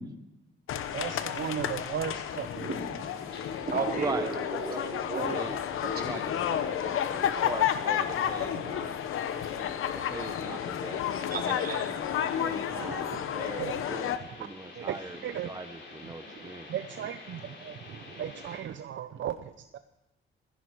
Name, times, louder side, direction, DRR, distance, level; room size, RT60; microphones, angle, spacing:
sound 1, 0.7-14.2, left 9 dB, 80° left, 1.0 m, -31 dB
sound 2, 0.7-18.6, left 3 dB, 60° left, 3.9 m, -50 dB
voice 1, 0.9-2.6 8.5-8.6 12.7-13.3 13.6-13.8 14.4-14.5 14.8-15.5 16.0-19.8, right 10 dB, 65° right, 10 dB, 0.7 m, -37 dB
voice 2, 2.6-3.0 3.6-5.4 5.8-6.1 9.5-9.6 11.3-11.9, right 3 dB, 45° right, 0 dB, 3.7 m, -34 dB
voice 3, 4.0-4.3 4.6-5.6 5.8-8.9 9.9-11.1 11.5-11.7 12.4-15.2 15.4-15.7 15.9-16.7, right 3 dB, 20° right, 7 dB, 0.7 m, -40 dB
16.5 x 15.0 x 4.7 m, 0.96 s
cardioid pair, 100°, 21 cm